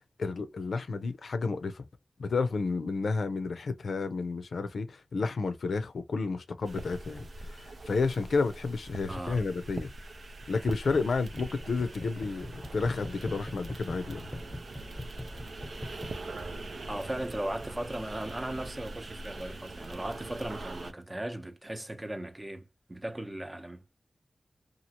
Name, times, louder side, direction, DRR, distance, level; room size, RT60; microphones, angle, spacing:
voice 1, 0.2-1.8 2.2-9.9 10.5-14.3, left 4 dB, 90° left, 0.5 m, -31 dB
sound 1, 6.6-20.9, right 2 dB, 75° right, 0.5 m, -42 dB
voice 2, 9.1-9.4 12.3-12.4 16.9-24.0, right 1 dB, 25° right, 0.6 m, -37 dB
sound 2, 10.9-16.1, left 1 dB, 5° left, 0.8 m, -42 dB
2.9 x 2.4 x 2.8 m
cardioid pair, 60°, 0 cm